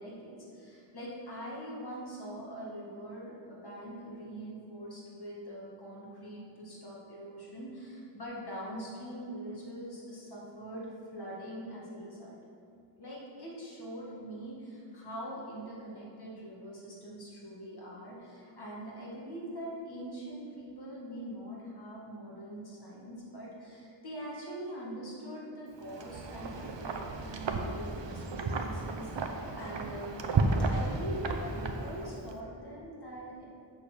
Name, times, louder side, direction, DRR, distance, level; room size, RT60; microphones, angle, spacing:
voice 1, 0.0-12.4 13.0-30.3 30.7-33.4, equal, 55° left, -5 dB, 2.0 m, -43 dB
Wind, 25.8-32.3, right 3 dB, 70° right, 0.8 m, -33 dB
8.3 x 4.4 x 6.6 m, 2.6 s
wide cardioid pair, 50°, 46 cm